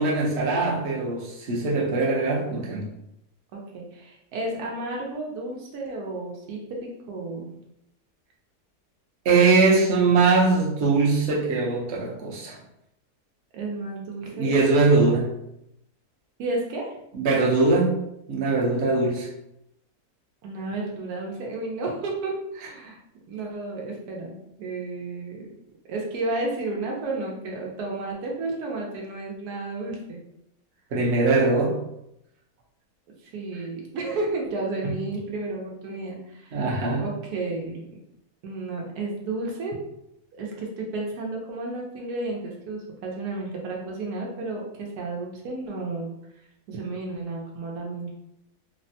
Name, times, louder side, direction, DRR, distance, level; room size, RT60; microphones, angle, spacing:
voice 1, 0.0-2.9 9.2-12.6 14.3-15.3 17.1-18.0 18.3-19.3 30.9-31.8 34.8-34.9 36.5-37.1, right 3 dB, 55° right, -3 dB, 0.8 m, -21 dB
voice 2, 3.5-7.5 13.5-14.5 16.4-16.9 20.4-23.0 23.3-25.5 25.9-30.2 33.3-36.6 37.0-38.0 38.4-39.7 40.4-46.1 46.7-48.1, right 2 dB, 85° right, -1 dB, 1.2 m, -32 dB
3.4 x 2.1 x 2.6 m, 0.81 s
omnidirectional pair, 1.6 m